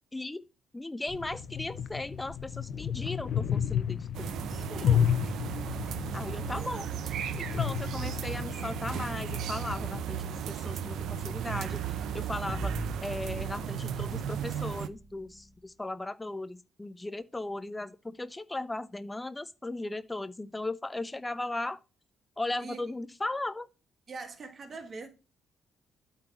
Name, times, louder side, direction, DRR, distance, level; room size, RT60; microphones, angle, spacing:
voice 1, 0.1-0.4 0.7-4.4 6.1-12.7 13.0-21.8 22.4-23.7, left 2 dB, 15° left, 0.5 m, -37 dB
sound 1, 1.1-10.0, left 9 dB, 60° left, 0.6 m, -32 dB
sound 2, 4.1-14.9, right 9 dB, 75° right, 0.6 m, -35 dB
voice 2, 4.4-5.3 22.6-22.8 24.1-25.1, right 4 dB, 40° right, 1.7 m, -43 dB
sound 3, 12.5-15.6, right 2 dB, 15° right, 1.7 m, -40 dB
8.6 x 4.0 x 5.6 m
cardioid pair, 90°, 0 cm